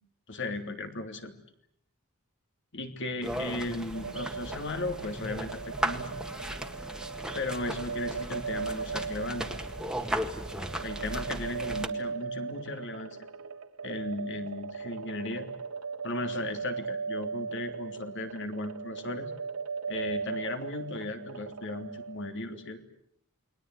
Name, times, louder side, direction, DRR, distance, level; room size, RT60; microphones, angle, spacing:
voice 1, 0.3-1.3 2.7-6.1 7.3-9.4 10.8-13.2 13.8-15.5 16.0-19.3 19.9-22.8, left 2 dB, 55° left, 6 dB, 3.3 m, -36 dB
sound 1, 3.2-11.9, right 1 dB, 5° right, 1.8 m, -36 dB
sound 2, 3.9-22.4, right 5 dB, 80° right, 1.8 m, -38 dB
29.0 x 21.5 x 9.4 m, 0.70 s
head